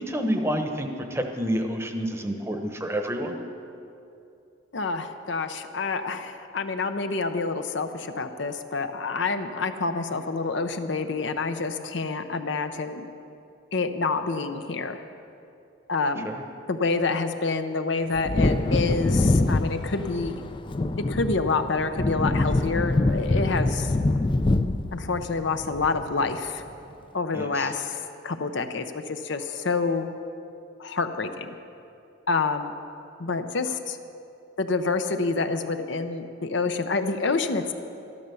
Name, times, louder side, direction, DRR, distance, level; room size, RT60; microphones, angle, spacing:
voice 1, 0.0-3.3 16.2-16.4 27.3-27.7, equal, 15° right, 4 dB, 1.0 m, -29 dB
voice 2, 4.7-13.1 13.7-15.0 15.9-16.3 16.7-20.4 21.0-23.9 24.9-26.6 27.1-30.1 30.8-31.5 32.3-32.7 33.2-34.0 34.6-37.7, left 4 dB, 65° left, 8 dB, 0.8 m, -27 dB
Wind / Thunder, 18.1-26.4 26.7-26.8, left 2 dB, 25° left, 0.4 m, -25 dB
13.0 x 12.5 x 7.0 m, 2.7 s
head